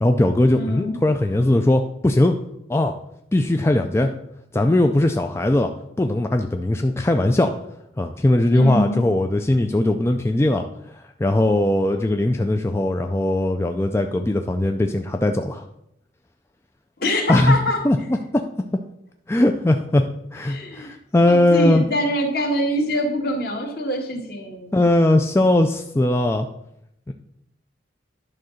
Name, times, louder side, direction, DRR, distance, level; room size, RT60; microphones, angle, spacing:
voice 1, 0.0-2.3 2.7-2.9 3.3-4.1 4.5-5.7 6.0-7.5 8.0-10.6 10.9-15.6 17.3-17.6 17.8-18.4 19.3-20.1 20.3-21.9 24.7-26.5 27.1-27.2, left 1 dB, 15° left, 5 dB, 0.4 m, -19 dB
voice 2, 0.5-1.0 8.5-9.0 17.0-17.8 20.5-20.9 21.2-24.8, equal, 55° left, 2 dB, 1.7 m, -24 dB
11.0 x 3.8 x 6.4 m, 0.77 s
head